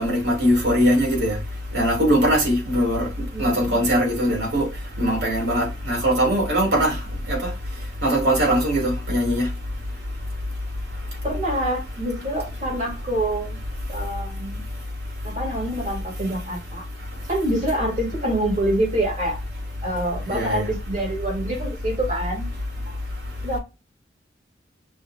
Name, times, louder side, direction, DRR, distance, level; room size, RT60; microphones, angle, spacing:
voice 1, 0.0-1.4 1.7-3.1 3.4-4.7 5.0-6.9 7.3-7.5 8.0-9.5 20.3-20.6, equal, 75° right, 2.7 m, -21 dB
voice 2, 3.3-3.8 11.2-13.6 13.9-14.6 15.2-16.8 17.3-19.4 19.8-22.5 23.4-23.6, right 1 dB, 40° right, 2.9 m, -26 dB
6.2 x 3.1 x 2.6 m
head